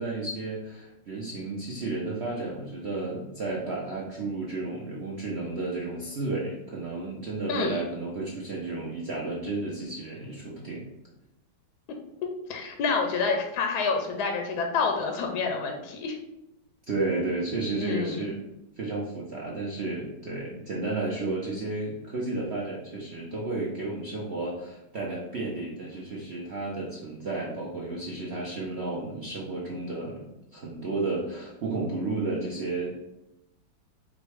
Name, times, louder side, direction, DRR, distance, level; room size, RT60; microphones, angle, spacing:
voice 1, 0.0-10.8 16.9-18.4 18.8-33.1, right 2 dB, 70° right, -4 dB, 0.6 m, -32 dB
voice 2, 7.5-7.8 12.5-16.2 17.8-18.3, left 4 dB, 70° left, 3 dB, 1.1 m, -28 dB
5.1 x 2.2 x 4.7 m, 0.88 s
omnidirectional pair, 2.1 m